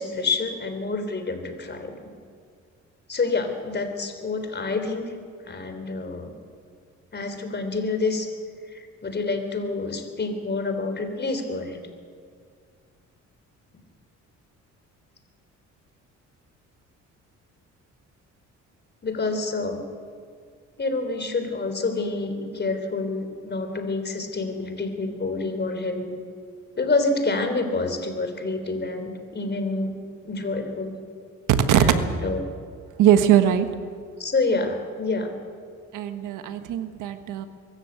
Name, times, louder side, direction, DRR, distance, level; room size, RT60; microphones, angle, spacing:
voice 1, 0.0-1.9 3.1-5.1 5.5-6.3 7.1-8.3 8.7-11.8 19.0-19.8 20.8-26.1 26.8-29.9 30.3-30.9 31.7-32.4 34.2-35.4, left 3 dB, 35° left, 7 dB, 3.7 m, -27 dB
voice 2, 33.0-33.8 35.9-37.5, right 10 dB, 90° right, 9 dB, 1.4 m, -20 dB
23.0 x 14.0 x 8.2 m, 2.1 s
cardioid pair, 90°, 30 cm